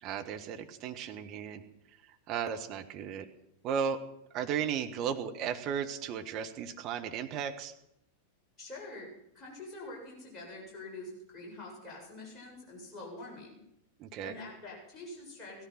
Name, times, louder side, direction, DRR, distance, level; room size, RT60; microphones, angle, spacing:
voice 1, 0.0-1.6 2.3-3.3 3.6-4.0 4.3-7.7 14.0-14.3, right 7 dB, 35° right, 5 dB, 1.6 m, -35 dB
voice 2, 8.6-9.1 9.3-13.6 14.2-15.6, left 2 dB, 20° left, -3 dB, 7.7 m, -45 dB
17.0 x 13.5 x 6.0 m, 0.78 s
figure-of-eight pair, 90°, 0 cm